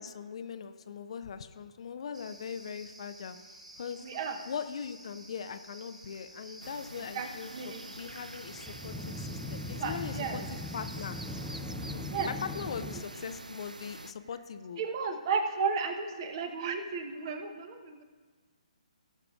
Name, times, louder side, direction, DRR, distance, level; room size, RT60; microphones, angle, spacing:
voice 1, 0.0-3.4 3.8-4.0 4.5-11.2 11.9-14.8, left 7 dB, 50° left, 10 dB, 0.5 m, -41 dB
sound 1, 2.1-11.6, right 1 dB, 70° right, 3.0 m, -52 dB
voice 2, 4.0-4.4 6.9-7.8 9.8-10.5 12.1-12.3 14.8-18.0, right 5 dB, 35° right, 7 dB, 0.9 m, -34 dB
sound 2, 6.6-14.1, right 1 dB, 90° right, 0.4 m, -46 dB
sound 3, 8.2-13.0, left 2 dB, ahead, 0.5 m, -40 dB
18.0 x 6.7 x 2.4 m, 1.5 s
figure-of-eight pair, 135°, 4 cm